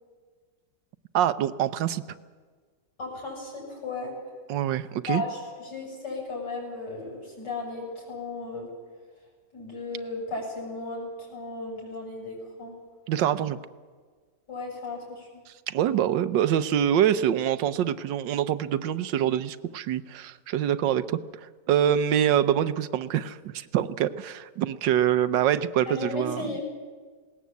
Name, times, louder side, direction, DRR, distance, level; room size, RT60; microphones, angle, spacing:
voice 1, 1.1-2.0 4.5-5.2 13.1-13.6 15.7-21.2 21.7-26.5, right 10 dB, 90° right, 14 dB, 1.5 m, -25 dB
voice 2, 3.0-4.1 5.1-8.7 9.5-12.8 14.5-15.4 25.9-26.6, left 3 dB, 70° left, -2 dB, 8.0 m, -35 dB
20.0 x 18.5 x 8.3 m, 1.5 s
omnidirectional pair, 1.9 m